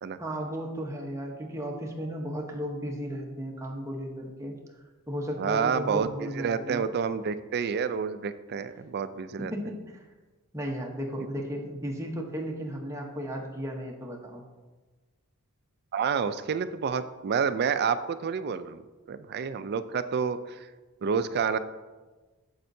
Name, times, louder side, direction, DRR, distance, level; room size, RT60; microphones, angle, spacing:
voice 1, 0.2-4.5 5.1-6.8 9.4-10.1 10.5-14.4, equal, 15° right, -1 dB, 0.9 m, -35 dB
voice 2, 5.4-9.5 15.9-18.8 19.1-20.6 21.0-21.6, right 6 dB, 45° right, 12 dB, 0.4 m, -29 dB
8.6 x 7.3 x 2.7 m, 1.3 s
head